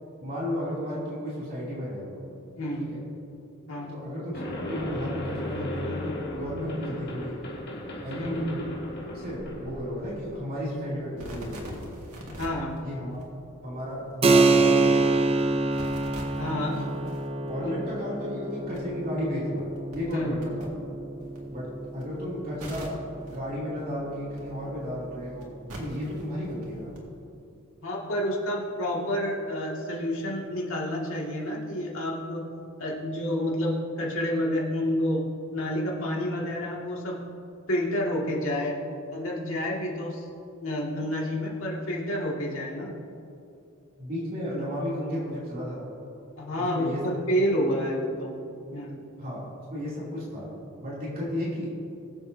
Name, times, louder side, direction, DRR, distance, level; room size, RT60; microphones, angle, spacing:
voice 1, 0.2-2.2 2.8-3.0 3.9-7.4 8.0-8.6 9.1-11.9 12.8-13.2 13.6-15.0 16.5-16.8 17.5-19.7 19.9-20.8 21.5-23.0 23.3-26.9 44.0-45.9 46.6-47.0 49.2-49.5 49.7-50.5 50.8-51.7, equal, 45° right, -7 dB, 2.9 m, -33 dB
sound 1, 4.3-10.3, left 1 dB, 50° left, 1.7 m, -36 dB
sound 2, 10.9-27.0, right 1 dB, 85° right, 2.0 m, -46 dB
voice 2, 12.4-12.8 16.4-16.8 17.6-17.7 20.1-20.4 27.8-32.5 32.8-35.2 35.5-37.3 37.7-38.8 39.1-40.2 40.6-43.0 46.4-48.4 48.7-49.0 49.3-49.4, equal, 65° left, -3 dB, 2.1 m, -29 dB
Keyboard (musical), 14.2-24.4, right 3 dB, 25° right, 0.5 m, -27 dB
21.5 x 7.5 x 2.7 m, 2.6 s
head